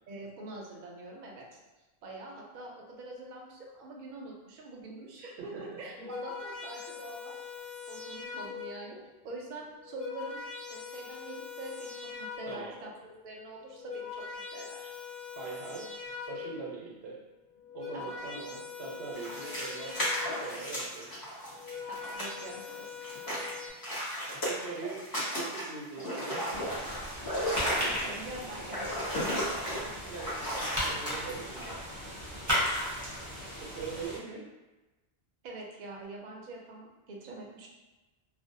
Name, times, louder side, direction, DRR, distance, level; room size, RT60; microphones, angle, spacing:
voice 1, 0.1-1.5 2.0-7.4 7.9-9.0 9.2-10.4 10.7-12.9 13.2-14.9 17.9-18.2 21.9-23.5 27.6-29.0 35.4-37.7, right 2 dB, 60° right, -1 dB, 0.6 m, -44 dB
voice 2, 5.4-6.1 12.5-12.7 15.4-15.9 16.3-17.2 17.7-20.0 20.3-21.1 24.5-25.0 25.3-26.5 29.7-31.8 33.5-34.4, right 5 dB, 85° right, -3 dB, 0.9 m, -42 dB
sound 1, 5.8-8.9 9.7-12.8 13.6-16.8 17.5-20.6 21.4-23.7, left 6 dB, 55° left, 0.9 m, -42 dB
sound 2, 19.1-22.7 23.0-31.7, equal, 25° left, 0.5 m, -35 dB
sound 3, 26.5-34.2, equal, 20° right, 0.7 m, -36 dB
2.5 x 2.0 x 2.5 m, 1.1 s
omnidirectional pair, 1.1 m